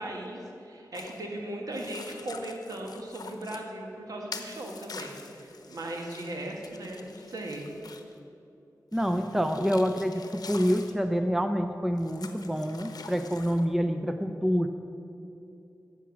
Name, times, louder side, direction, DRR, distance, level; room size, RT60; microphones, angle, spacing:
voice 1, 0.0-7.7, right 1 dB, 65° right, 0 dB, 1.7 m, -38 dB
sound 1, 0.9-1.2 1.7-3.7 4.3-8.2 8.9-11.0 12.0-13.7, left 4 dB, 75° left, 0.8 m, -46 dB
voice 2, 8.9-14.7, equal, 5° right, 7 dB, 0.5 m, -27 dB
10.5 x 7.3 x 7.2 m, 2.8 s
wide cardioid pair, 100°, 7 cm